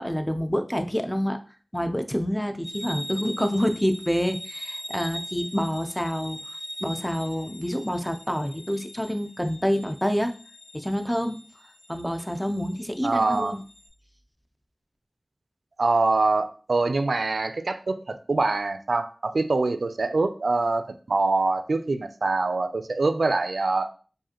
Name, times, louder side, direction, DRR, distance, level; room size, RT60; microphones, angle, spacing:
voice 1, 0.0-1.4 1.7-6.4 6.8-10.3 10.7-11.4 11.9-13.6, equal, 5° left, 6 dB, 0.4 m, -27 dB
sound 1, 2.6-13.9, equal, 90° left, 0.9 m, -41 dB
voice 2, 13.0-13.5 15.8-23.9, right 3 dB, 85° right, 9 dB, 0.3 m, -24 dB
4.8 x 2.5 x 2.8 m, 0.39 s
wide cardioid pair, 55°, 0 cm